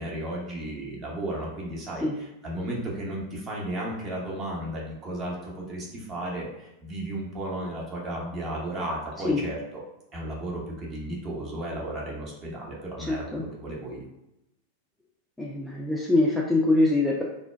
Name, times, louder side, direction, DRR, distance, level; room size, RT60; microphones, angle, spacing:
voice 1, 0.0-9.8 10.1-14.1, right 1 dB, 30° right, -3 dB, 0.8 m, -34 dB
voice 2, 13.0-13.5 15.4-17.2, left 2 dB, 5° left, -4 dB, 0.3 m, -24 dB
2.2 x 2.2 x 3.2 m, 0.90 s
figure-of-eight pair, 90°, 0 cm